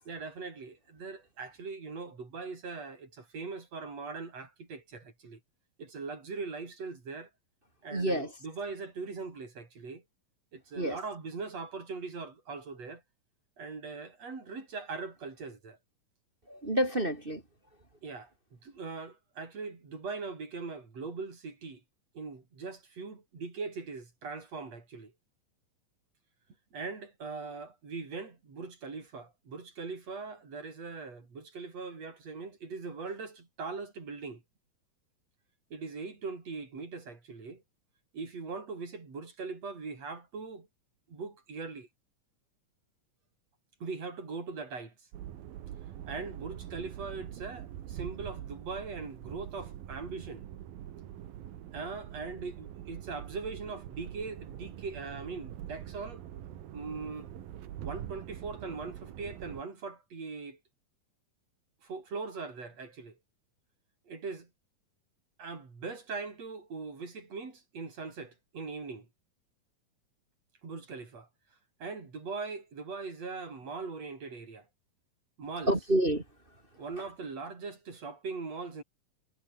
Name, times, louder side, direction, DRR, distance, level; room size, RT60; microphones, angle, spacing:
voice 1, 0.1-5.4 5.8-7.3 7.8-10.0 10.5-13.0 13.6-15.8 18.0-21.8 22.1-25.1 26.7-34.4 35.7-37.6 38.1-40.7 41.1-41.9 43.8-44.9 46.1-50.5 51.7-56.2 56.7-57.3 57.8-60.6 61.8-63.2 64.1-64.5 65.4-69.1 70.6-71.3 71.8-74.7 75.4-75.7 76.7-78.8, right 4 dB, 45° right, 6.0 m, -41 dB
voice 2, 7.9-8.3 10.8-11.0 16.5-17.4 75.7-76.2, right 1 dB, 20° right, 1.8 m, -28 dB
sound 1, 45.1-59.6, right 11 dB, 85° right, 3.5 m, -44 dB
omnidirectional pair, 4.1 m